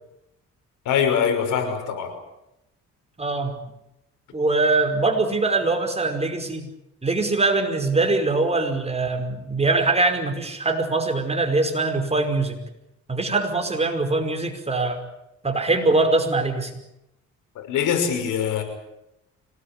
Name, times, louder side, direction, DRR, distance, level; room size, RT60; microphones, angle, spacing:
voice 1, 0.9-2.1 17.6-18.6, left 7 dB, 85° left, 5 dB, 6.0 m, -23 dB
voice 2, 3.2-3.5 4.3-6.7 7.0-12.6 13.1-15.1 15.4-16.7, right 3 dB, 20° right, 5 dB, 5.1 m, -22 dB
25.5 x 19.5 x 8.7 m, 0.86 s
cardioid pair, 90°, 30 cm